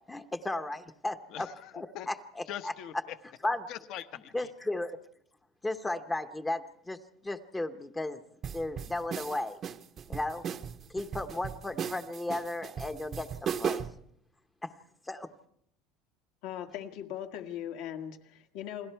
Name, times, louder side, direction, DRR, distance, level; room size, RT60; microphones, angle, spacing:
voice 1, 0.1-1.5 1.7-2.7 3.4-3.6 4.3-5.0 5.6-8.2 8.5-9.6 10.1-10.5 10.9-13.8 14.6-14.7 15.1-15.3, left 2 dB, 10° left, 8 dB, 0.9 m, -35 dB
voice 2, 1.3-2.1 2.5-3.1 3.7-4.5, left 11 dB, 50° left, 11 dB, 1.1 m, -42 dB
sound 1, 8.4-14.0, right 8 dB, 30° right, 0.8 m, -36 dB
voice 3, 16.4-18.9, left 10 dB, 65° left, 5 dB, 1.9 m, -39 dB
29.0 x 21.0 x 4.6 m, 0.72 s
cardioid pair, 155°, 0 cm